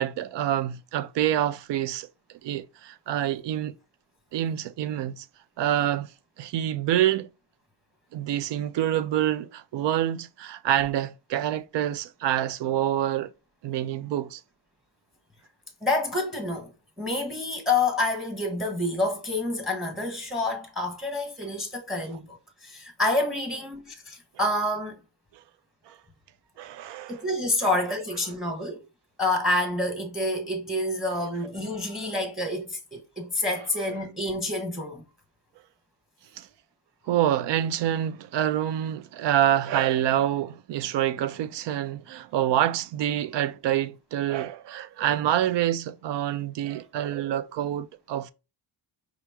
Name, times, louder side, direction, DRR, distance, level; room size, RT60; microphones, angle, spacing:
voice 1, 0.0-3.7 4.3-5.3 5.6-6.1 6.4-7.3 8.1-13.3 13.6-14.4 25.9-26.0 26.6-27.2 36.4-36.5 37.1-48.3, right 11 dB, 65° right, 0.6 m, -27 dB
voice 2, 15.8-16.7 17.0-25.0 27.1-28.8 29.2-35.0, left 2 dB, ahead, 1.0 m, -28 dB
5.0 x 3.0 x 3.4 m
cardioid pair, 115°, 46 cm